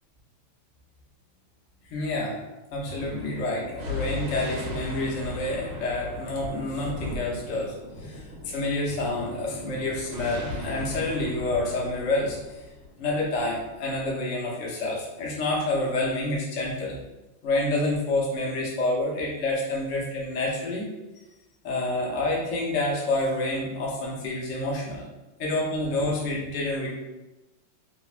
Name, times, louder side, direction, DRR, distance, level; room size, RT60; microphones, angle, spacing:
voice 1, 1.9-2.3 2.7-7.7 8.0-12.4 13.0-17.0 17.4-20.8 21.6-25.0 25.4-26.9, left 2 dB, 85° left, -4 dB, 0.6 m, -28 dB
Thunder, 2.8-13.7, left 2 dB, 85° right, 1.5 m, -37 dB
3.4 x 2.0 x 2.4 m, 1.0 s
omnidirectional pair, 2.3 m